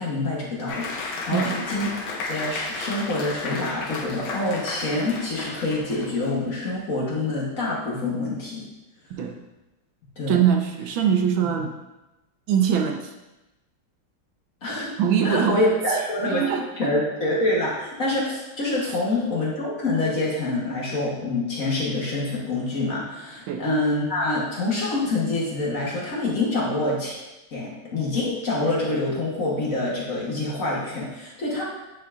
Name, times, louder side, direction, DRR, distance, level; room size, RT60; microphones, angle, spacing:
voice 1, 0.0-1.9 2.2-8.6 10.2-10.4 11.4-11.5 14.6-14.9 15.2-16.4 16.8-27.2 27.5-31.6, left 2 dB, 45° left, -4 dB, 1.4 m, -26 dB
Applause, 0.7-6.4, left 3 dB, 80° left, 1.6 m, -33 dB
voice 2, 1.3-1.7 9.1-9.4 10.3-11.7 12.5-13.1 15.0-15.6 15.9-16.0 16.3-16.9 23.5-23.7, right 8 dB, 75° right, 4 dB, 1.4 m, -23 dB
9.3 x 4.5 x 2.5 m, 1.0 s
omnidirectional pair, 2.2 m